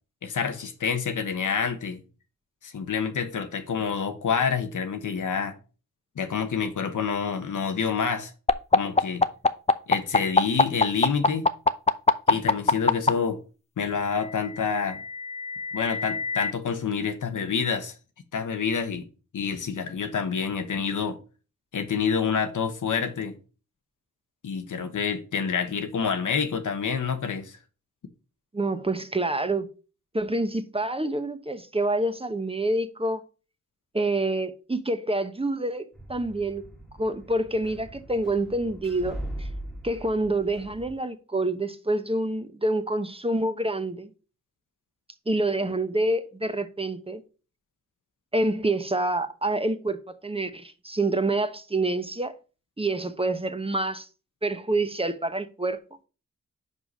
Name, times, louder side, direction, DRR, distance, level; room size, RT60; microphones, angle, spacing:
voice 1, 0.2-2.0 2.6-5.6 6.2-8.3 8.7-9.2 9.9-11.5 12.3-13.4 13.8-15.0 15.7-17.9 18.3-19.0 19.3-21.2 21.7-23.4 24.4-27.6, left 6 dB, 75° left, 1.1 m, -27 dB
sound 1, 8.5-13.1 14.2-16.5, left 3 dB, 20° left, 0.6 m, -21 dB
voice 2, 28.5-29.7 30.1-33.2 33.9-36.6 37.0-39.5 39.8-44.1 45.3-47.2 48.3-52.3 52.8-54.1 54.4-55.8, right 2 dB, 20° right, 0.9 m, -27 dB
sound 2, 35.9-40.9, right 1 dB, ahead, 1.6 m, -40 dB
5.5 x 4.7 x 5.4 m
cardioid pair, 45°, 31 cm